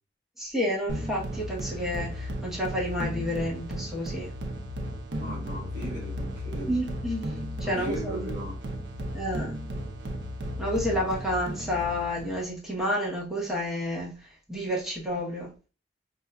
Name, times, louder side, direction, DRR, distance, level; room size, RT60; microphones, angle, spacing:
voice 1, 0.4-4.3 6.7-7.3 7.6-8.3 9.1-9.5 10.6-15.5, equal, ahead, -4 dB, 0.9 m, -30 dB
sound 1, 0.9-12.4, equal, 75° right, 0.6 m, -35 dB
voice 2, 5.2-6.7 7.6-8.6 10.8-11.1, equal, 50° right, -8 dB, 1.9 m, -37 dB
5.1 x 2.3 x 2.2 m, 0.35 s
head